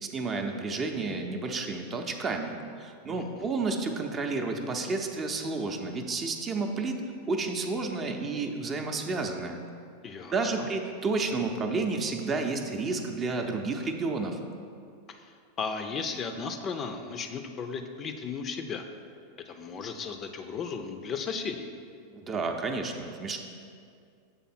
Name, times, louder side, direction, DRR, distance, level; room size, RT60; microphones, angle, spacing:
voice 1, 0.0-7.0 7.3-9.6 10.3-14.4 22.1-23.4, right 3 dB, 30° right, 4 dB, 0.5 m, -31 dB
voice 2, 3.1-3.5 10.0-10.7 15.1-18.8 19.5-21.7, left 5 dB, 35° left, 6 dB, 0.4 m, -35 dB
7.2 x 3.3 x 4.3 m, 2.3 s
hypercardioid pair, 90°, 0 cm